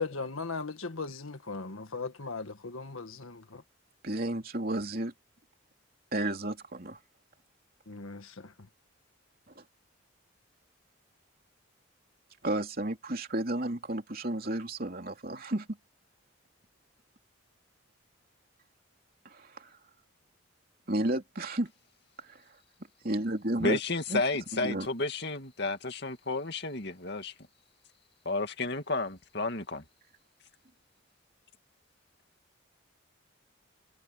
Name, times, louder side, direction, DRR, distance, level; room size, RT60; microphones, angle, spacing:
voice 1, 0.0-3.6 7.9-8.5, left 4 dB, 80° left, 1.7 m, -38 dB
voice 2, 4.0-5.1 6.1-7.0 9.5-9.6 12.4-15.7 19.2-19.8 20.9-21.7 22.3-22.4 23.0-23.8 24.1-24.2 24.5-24.9, right 1 dB, 45° right, 3.3 m, -32 dB
voice 3, 23.6-27.3 28.3-29.8, left 3 dB, 50° left, 2.4 m, -32 dB
head